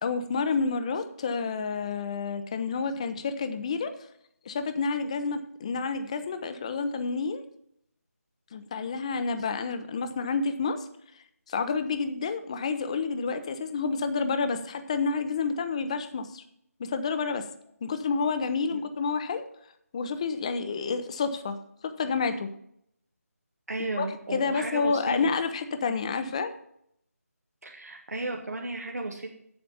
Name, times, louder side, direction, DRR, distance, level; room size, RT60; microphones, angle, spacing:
voice 1, 0.0-4.0 4.5-7.4 8.5-10.8 11.5-16.4 16.8-17.5 17.8-19.5 19.9-21.6 21.8-22.5 24.0-24.1 24.3-26.5, left 4 dB, 25° left, 10 dB, 0.6 m, -29 dB
voice 2, 23.7-25.2 27.6-29.3, right 2 dB, 80° right, 1 dB, 1.4 m, -34 dB
8.0 x 7.9 x 5.5 m, 0.72 s
figure-of-eight pair, 160°, 8 cm